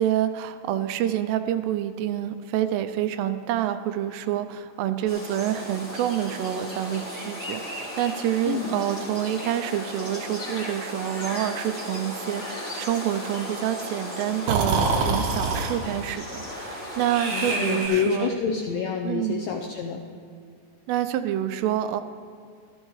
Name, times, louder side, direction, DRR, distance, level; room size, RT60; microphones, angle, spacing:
voice 1, 0.0-18.3 19.0-19.5 20.9-22.0, right 11 dB, 85° right, 10 dB, 2.6 m, -27 dB
sound 1, 5.1-17.9, left 1 dB, 25° left, 2.8 m, -35 dB
Breathing, 14.5-15.8 17.1-18.3, right 4 dB, 70° right, 2.1 m, -26 dB
voice 2, 17.3-20.0, left 7 dB, 85° left, 1 dB, 1.9 m, -28 dB
15.0 x 13.5 x 3.2 m, 2.2 s
omnidirectional pair, 4.8 m